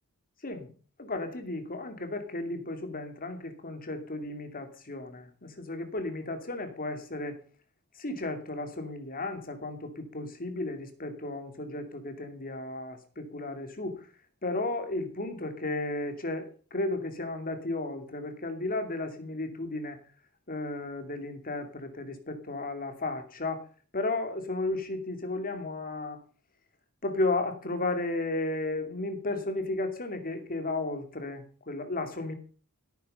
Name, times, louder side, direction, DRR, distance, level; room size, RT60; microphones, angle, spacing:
voice 1, 1.0-7.4 7.9-14.1 14.4-20.0 20.5-23.7 23.9-26.2 27.0-32.3, left 2 dB, 40° left, 7 dB, 2.5 m, -34 dB
17.0 x 9.1 x 5.5 m, 0.39 s
head